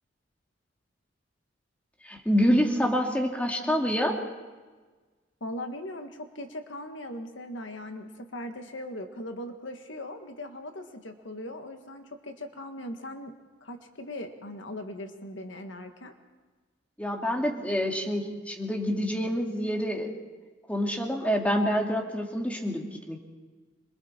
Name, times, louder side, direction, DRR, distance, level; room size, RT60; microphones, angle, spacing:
voice 1, 2.0-4.2 17.0-20.1 20.7-23.2, equal, 5° left, 0 dB, 2.6 m, -27 dB
voice 2, 5.4-13.3 13.6-16.1, left 1 dB, 75° left, 5 dB, 1.7 m, -39 dB
27.0 x 23.0 x 4.5 m, 1.3 s
head